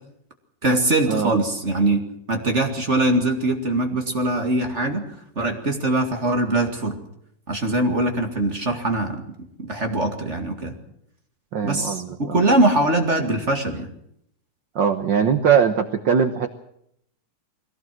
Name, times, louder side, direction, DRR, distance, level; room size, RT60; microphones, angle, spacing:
voice 1, 0.6-2.0 2.3-5.0 5.4-7.0 7.5-9.2 9.6-10.7 11.6-13.9, right 2 dB, 25° right, 4 dB, 1.9 m, -22 dB
voice 2, 11.5-12.4 14.7-16.5, right 7 dB, 70° right, 8 dB, 1.1 m, -21 dB
22.0 x 17.0 x 7.6 m, 0.74 s
omnidirectional pair, 3.5 m